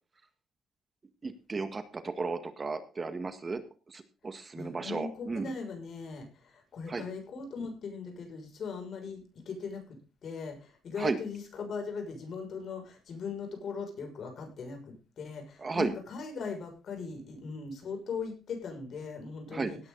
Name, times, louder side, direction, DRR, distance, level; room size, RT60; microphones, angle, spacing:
voice 1, 1.2-3.6 3.9-5.5 6.9-7.0 11.0-11.2 15.6-15.9 19.5-19.7, right 4 dB, 30° right, 10 dB, 1.7 m, -34 dB
voice 2, 4.5-9.8 10.2-19.8, left 5 dB, 60° left, 4 dB, 6.6 m, -39 dB
17.5 x 9.7 x 4.0 m, 0.32 s
cardioid pair, 90°, 0 cm